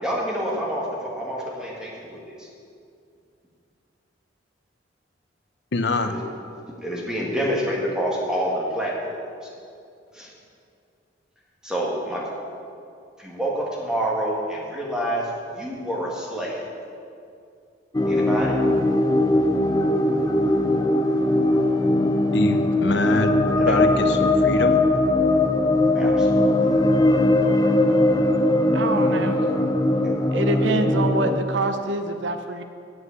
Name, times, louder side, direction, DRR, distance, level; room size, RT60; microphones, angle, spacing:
voice 1, 0.0-2.5 6.1-6.2 6.8-9.2 10.1-10.3 11.6-12.3 13.2-15.3 15.5-16.6 18.1-18.6 23.6-23.9 25.9-26.5, equal, 5° right, -4 dB, 1.8 m, -27 dB
voice 2, 5.7-6.1 22.3-24.8, left 2 dB, 60° left, 7 dB, 0.6 m, -25 dB
sound 1, 17.9-31.4, left 1 dB, 20° left, 0.5 m, -20 dB
voice 3, 28.7-29.4 30.3-32.6, right 2 dB, 75° right, 7 dB, 0.7 m, -26 dB
8.0 x 7.8 x 8.1 m, 2.5 s
head